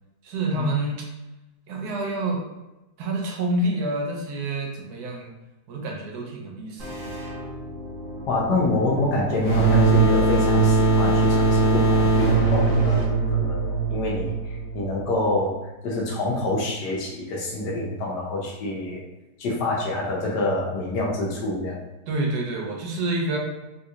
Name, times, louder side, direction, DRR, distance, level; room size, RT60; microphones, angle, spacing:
voice 1, 0.2-1.1 1.7-2.4 3.0-5.3 5.7-7.1 22.1-23.4, right 2 dB, 75° right, 0 dB, 1.2 m, -28 dB
sound 1, 6.8-13.0, left 1 dB, 40° right, 0.8 m, -35 dB
voice 2, 8.3-14.4 14.7-19.0 19.4-21.8, left 2 dB, 80° left, -2 dB, 1.3 m, -27 dB
sound 2, 9.4-14.8, right 3 dB, 50° left, 1.6 m, -20 dB
3.8 x 2.8 x 2.4 m, 1.0 s
omnidirectional pair, 1.8 m